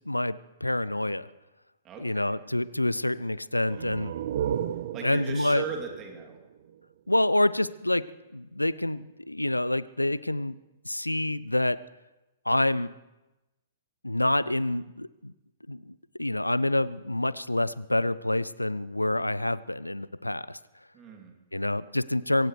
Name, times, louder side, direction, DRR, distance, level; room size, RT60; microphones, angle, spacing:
voice 1, 0.1-1.3 2.0-4.1 5.0-5.6 7.1-10.6 10.8-11.8 12.5-12.9 14.0-15.3 15.7-20.6 21.5-22.5, left 1 dB, 90° left, 20 dB, 0.4 m, -27 dB
voice 2, 1.8-2.4 4.9-6.4 20.9-21.3, right 5 dB, 25° right, 1 dB, 2.8 m, -38 dB
sound 1, 3.6-7.2, right 9 dB, 55° right, 0.7 m, -34 dB
24.5 x 16.5 x 3.2 m, 1.0 s
figure-of-eight pair, 110°, 0 cm